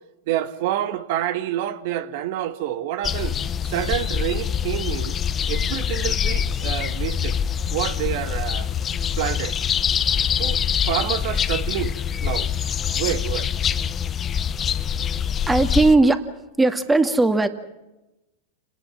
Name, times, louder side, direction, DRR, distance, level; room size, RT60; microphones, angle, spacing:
voice 1, 0.3-3.4 3.6-5.2 5.5-7.4 7.7-8.7 9.2-9.6 10.4-11.9 12.2-12.5 12.9-13.5, right 12 dB, 65° right, 1.9 m, -28 dB
sound 1, 3.0-16.0, left 8 dB, 30° left, 1.0 m, -24 dB
voice 2, 15.5-16.2 16.6-17.5, right 2 dB, 10° right, 2.1 m, -17 dB
28.5 x 19.5 x 6.1 m
hypercardioid pair, 105°, 0 cm